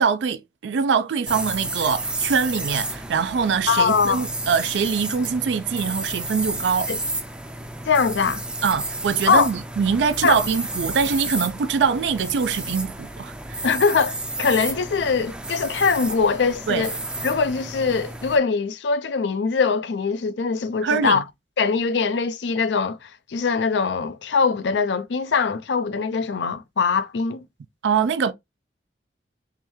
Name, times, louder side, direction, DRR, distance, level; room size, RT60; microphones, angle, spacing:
voice 1, 0.0-6.9 8.6-13.7 16.7-16.9 20.8-21.2 27.8-28.3, right 6 dB, 85° right, 0.4 m, -23 dB
sound 1, 1.3-18.4, right 2 dB, 5° right, 0.4 m, -31 dB
voice 2, 3.7-4.3 6.9-7.0 7.9-8.4 9.3-9.5 10.2-10.4 13.6-17.0 17.2-21.2 21.6-27.4, left 5 dB, 85° left, 0.5 m, -22 dB
3.6 x 3.2 x 3.0 m
head